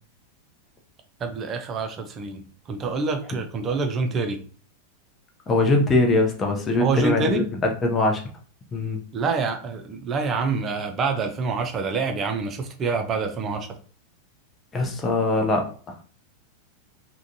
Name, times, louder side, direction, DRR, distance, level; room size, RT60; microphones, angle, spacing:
voice 1, 1.2-4.4 6.8-7.4 9.1-13.7, right 4 dB, 25° right, 5 dB, 0.5 m, -26 dB
voice 2, 5.5-8.2 8.7-9.0 14.7-16.0, left 2 dB, 20° left, 2 dB, 0.7 m, -22 dB
3.6 x 2.2 x 2.7 m, 0.41 s
figure-of-eight pair, 90°, 0 cm